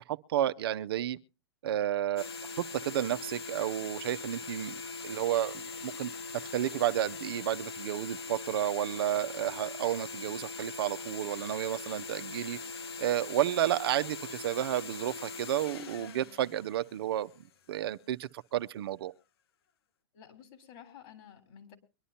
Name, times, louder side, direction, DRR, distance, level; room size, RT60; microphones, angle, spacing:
voice 1, 0.1-1.2 1.6-2.3 2.8-4.7 5.0-6.1 6.5-12.6 13.0-17.3 17.7-19.1, right 12 dB, 65° right, 0.6 m, -31 dB
sound 1, 2.2-17.4, left 4 dB, 65° left, 1.1 m, -41 dB
voice 2, 20.1-21.8, left 9 dB, 45° left, 3.6 m, -52 dB
23.0 x 11.0 x 2.8 m
hypercardioid pair, 125°, 14 cm